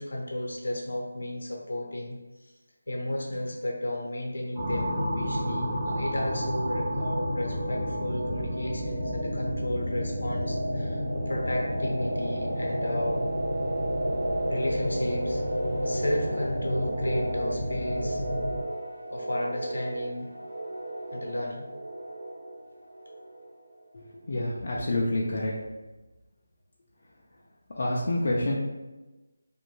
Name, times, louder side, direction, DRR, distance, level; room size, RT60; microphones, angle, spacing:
voice 1, 0.0-2.2 2.9-13.3 14.5-15.4 15.8-18.2 19.1-20.3 21.1-21.7, left 1 dB, 75° left, -1 dB, 0.7 m, -33 dB
sound 1, 4.5-18.6, equal, 15° right, 0.7 m, -31 dB
sound 2, 9.4-24.0, right 1 dB, 80° right, 0.5 m, -35 dB
voice 2, 24.3-25.5 27.8-28.6, left 1 dB, 40° left, -4 dB, 0.4 m, -27 dB
2.5 x 2.1 x 3.0 m, 1.1 s
figure-of-eight pair, 175°, 0 cm